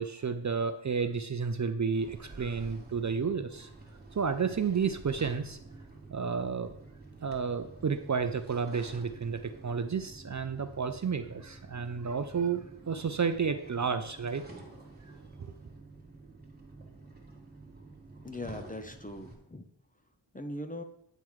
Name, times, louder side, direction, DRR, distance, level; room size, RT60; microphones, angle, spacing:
voice 1, 0.0-3.7 4.2-5.6 6.1-6.7 7.2-14.4 15.4-15.5, right 5 dB, 40° right, 9 dB, 0.5 m, -31 dB
sound 1, 1.9-19.3, right 2 dB, 20° right, 1.4 m, -50 dB
voice 2, 18.2-19.6 20.3-20.8, left 1 dB, 20° left, 7 dB, 0.6 m, -40 dB
8.9 x 3.8 x 4.6 m, 0.73 s
wide cardioid pair, 75°, 46 cm